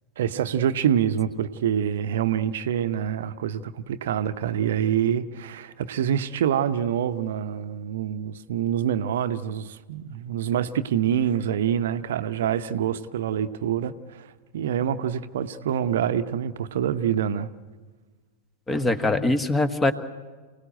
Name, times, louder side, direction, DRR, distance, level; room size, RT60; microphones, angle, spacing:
voice 1, 0.2-17.5, right 9 dB, 60° right, 11 dB, 0.9 m, -26 dB
voice 2, 18.7-19.9, left 2 dB, 15° left, 11 dB, 1.5 m, -22 dB
28.5 x 18.0 x 9.1 m, 1.4 s
figure-of-eight pair, 90°, 0 cm